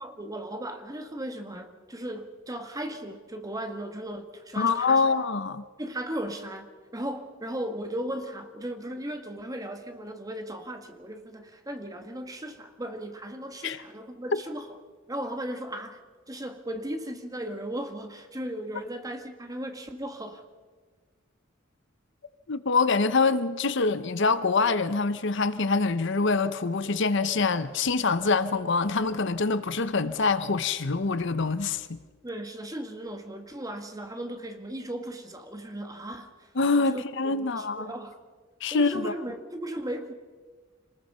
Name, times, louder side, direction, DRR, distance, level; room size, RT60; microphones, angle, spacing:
voice 1, 0.0-5.1 5.8-14.7 15.1-16.0 16.3-20.4 32.2-36.5 36.8-38.2 38.7-40.1, right 1 dB, 20° right, 1.8 m, -36 dB
voice 2, 4.6-5.6 13.6-13.8 22.5-31.9 36.5-37.9 38.6-39.1, left 4 dB, 65° left, 0.9 m, -25 dB
27.0 x 20.0 x 5.6 m
head